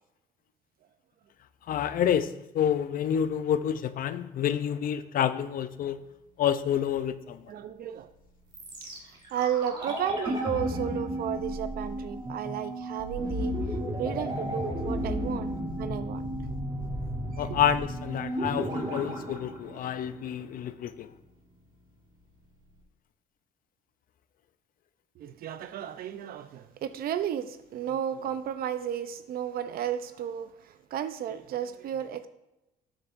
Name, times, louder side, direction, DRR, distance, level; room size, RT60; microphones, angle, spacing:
voice 1, 1.7-6.0 6.4-7.4 17.4-21.1, left 9 dB, 55° left, 0.6 m, -28 dB
voice 2, 7.5-8.1 8.8-8.9 9.3-13.5 14.0-16.2 17.3-17.4 25.2-32.3, right 9 dB, 60° right, 0.6 m, -33 dB
sound 1, 8.5-20.5 20.8-20.9, equal, 30° right, 2.9 m, -33 dB
12.5 x 7.7 x 2.6 m
cardioid pair, 110°, 17 cm